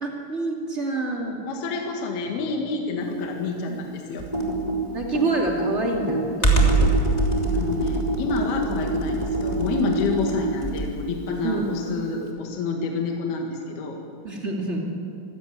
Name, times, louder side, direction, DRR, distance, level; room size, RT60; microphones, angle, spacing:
voice 1, 0.0-1.4 4.9-7.1 11.4-11.7 14.2-14.9, right 2 dB, 75° right, -1 dB, 0.6 m, -27 dB
voice 2, 1.5-4.3 7.5-14.0, left 3 dB, 60° left, 1 dB, 3.2 m, -28 dB
Computer keyboard, 4.2-11.0, right 2 dB, 15° left, 1.7 m, -23 dB
26.0 x 16.0 x 9.5 m, 2.5 s
omnidirectional pair, 6.0 m